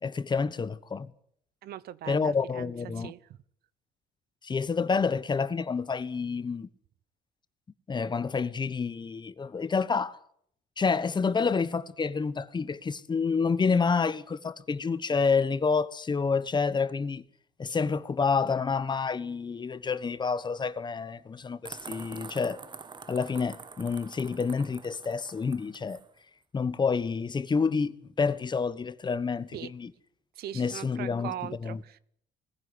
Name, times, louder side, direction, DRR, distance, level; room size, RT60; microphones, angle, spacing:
voice 1, 0.0-1.1 2.1-3.1 4.4-6.7 7.9-10.2 10.8-17.2 17.6-22.6 23.1-26.0 26.5-29.9 30.5-31.8, left 5 dB, 25° left, 1.1 m, -28 dB
voice 2, 1.6-3.2 29.5-29.7 30.4-32.0, right 12 dB, 65° right, 0.9 m, -40 dB
sound 1, 21.6-26.1, right 5 dB, 25° right, 1.1 m, -46 dB
20.5 x 15.5 x 9.7 m
cardioid pair, 110°, 17 cm